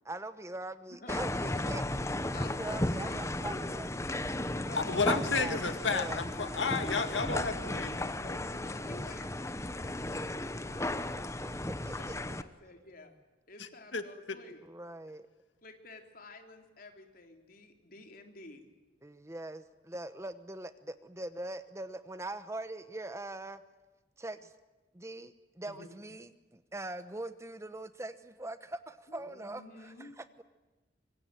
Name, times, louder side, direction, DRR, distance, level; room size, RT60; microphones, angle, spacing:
voice 1, 0.1-2.0 2.6-3.9 5.1-5.6 5.9-6.2 11.4-11.5 11.8-12.0 14.6-15.3 19.0-23.6 24.2-24.5 24.9-30.4, right 2 dB, 15° right, 11 dB, 1.0 m, -42 dB
sound 1, 1.1-12.4, left 1 dB, 15° left, 1.0 m, -35 dB
voice 2, 2.3-3.8 8.2-11.3 12.3-13.1 13.5-14.6 15.6-18.7 29.1-30.1, left 2 dB, 50° left, 4 dB, 3.7 m, -52 dB
voice 3, 4.7-8.1 13.6-14.4, left 4 dB, 85° left, 8 dB, 2.0 m, -32 dB
25.5 x 24.0 x 9.4 m, 1.2 s
head